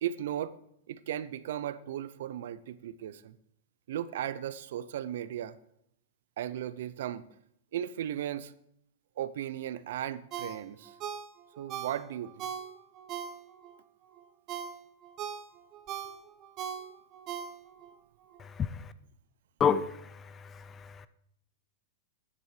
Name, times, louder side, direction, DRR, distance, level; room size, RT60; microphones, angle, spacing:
voice 1, 0.0-0.5 0.9-3.3 3.9-5.6 6.4-7.2 7.7-8.5 9.2-10.9 11.6-12.5, right 11 dB, 70° right, 0.6 m, -36 dB
Ringtone, 10.3-13.8 14.2-17.9 18.3-18.4, right 8 dB, 35° right, 1.0 m, -40 dB
voice 2, 18.4-18.8 19.6-21.1, left 7 dB, 20° left, 0.5 m, -30 dB
9.8 x 7.4 x 4.9 m
hypercardioid pair, 135°, 0 cm